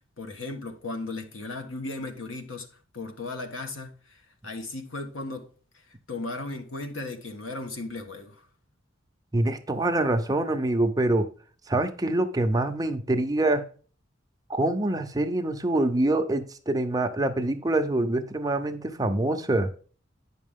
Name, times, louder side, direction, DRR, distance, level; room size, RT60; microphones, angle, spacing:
voice 1, 0.2-2.7 2.9-5.5 5.7-5.8 6.1-8.5, left 2 dB, 85° left, 1.3 m, -36 dB
voice 2, 9.3-11.3 11.7-13.6 14.5-19.7, right 2 dB, 20° right, 0.7 m, -25 dB
9.2 x 5.9 x 3.6 m
head